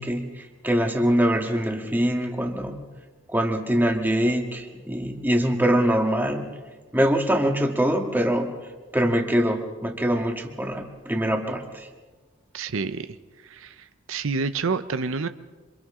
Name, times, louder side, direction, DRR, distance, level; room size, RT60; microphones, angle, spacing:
voice 1, 0.0-2.8 3.3-6.5 6.9-8.5 8.9-11.9, equal, 10° right, 3 dB, 1.7 m, -23 dB
voice 2, 12.5-13.2 13.4-15.3, right 4 dB, 85° right, 11 dB, 0.7 m, -28 dB
27.5 x 25.5 x 3.8 m, 1.3 s
head